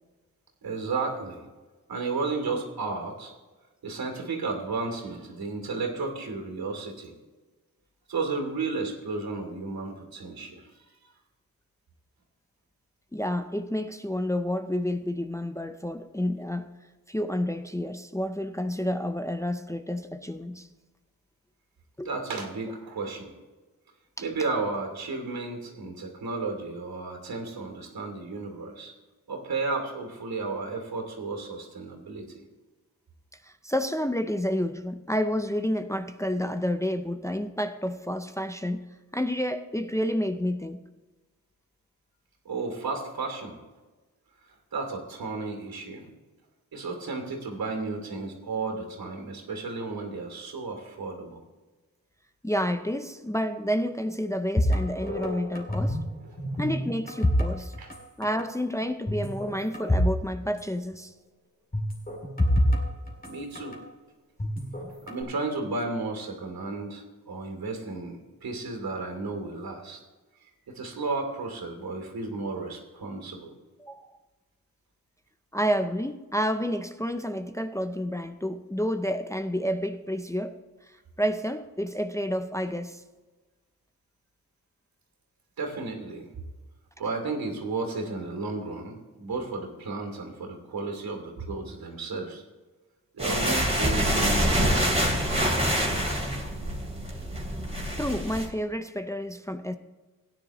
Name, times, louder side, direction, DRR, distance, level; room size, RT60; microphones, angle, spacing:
voice 1, 0.6-1.4 1.9-3.3 3.8-7.1 8.1-10.7 22.0-23.3 24.2-28.9 29.3-32.4 42.4-43.6 44.5-46.1 46.7-51.4 57.8-57.9 63.2-63.8 65.1-70.0 70.4-73.5 85.6-86.3 87.0-92.4 93.1-95.2, right 3 dB, 85° right, 2.8 m, -33 dB
voice 2, 13.1-16.7 17.1-20.7 22.0-22.1 24.2-24.3 33.4-38.8 39.1-40.8 52.4-56.0 56.6-57.7 58.2-61.1 73.8-74.0 75.5-83.0 98.0-99.8, equal, 10° left, 0.5 m, -30 dB
sound 1, 54.6-56.1 56.4-58.0 58.2-58.5 59.1-60.2 60.4-60.5 61.7-63.8 64.4-65.2, equal, 25° left, 2.4 m, -26 dB
sound 2, 93.2-98.5, equal, 20° right, 2.6 m, -26 dB
17.0 x 9.9 x 3.0 m
wide cardioid pair, 100°, 35 cm